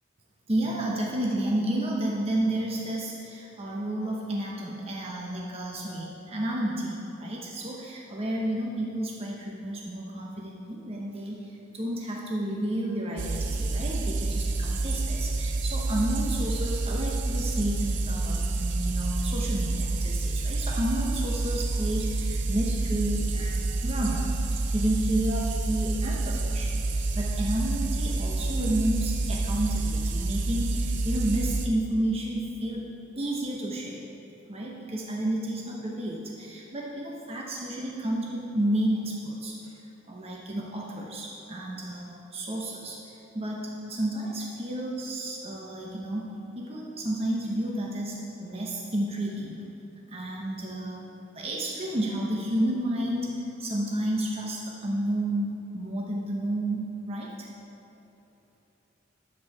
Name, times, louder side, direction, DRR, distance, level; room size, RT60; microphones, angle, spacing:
voice 1, 0.5-24.3 24.7-32.8 33.2-34.0 34.5-39.8 40.1-49.6 50.1-51.1 51.3-57.5, right 1 dB, 30° right, -3 dB, 0.9 m, -31 dB
sound 1, 13.2-31.7, right 2 dB, 65° right, 0.6 m, -28 dB
10.0 x 8.4 x 4.7 m, 2.9 s
head